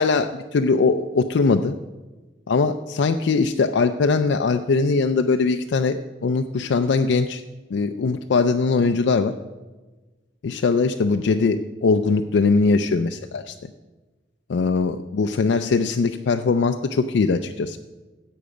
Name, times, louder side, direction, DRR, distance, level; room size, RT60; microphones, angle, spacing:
voice 1, 0.0-1.7 2.5-7.4 7.7-9.3 10.4-13.5 14.5-17.8, left 4 dB, 70° left, 7 dB, 0.4 m, -21 dB
10.5 x 7.8 x 4.9 m, 1.2 s
head